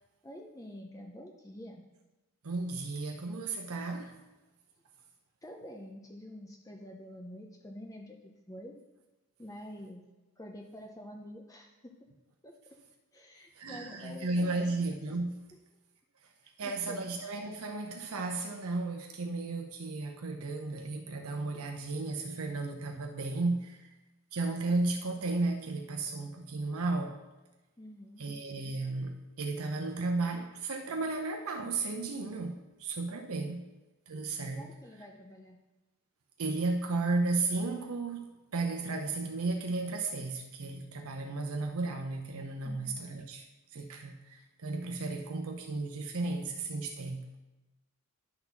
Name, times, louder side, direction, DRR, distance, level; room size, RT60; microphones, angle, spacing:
voice 1, 0.2-1.8 5.4-8.2 8.5-8.8 9.4-10.0 10.4-12.0 12.4-12.5 13.1-14.7 16.6-17.0 27.8-28.2 34.6-35.6 42.6-43.0, left 1 dB, 15° left, 1 dB, 0.6 m, -47 dB
voice 2, 2.4-4.2 13.6-15.4 16.6-23.9 24.3-27.2 28.2-33.6 34.1-34.6 36.4-43.4 43.7-47.3, right 3 dB, 70° right, 3 dB, 0.7 m, -34 dB
10.5 x 4.0 x 5.9 m, 1.1 s
head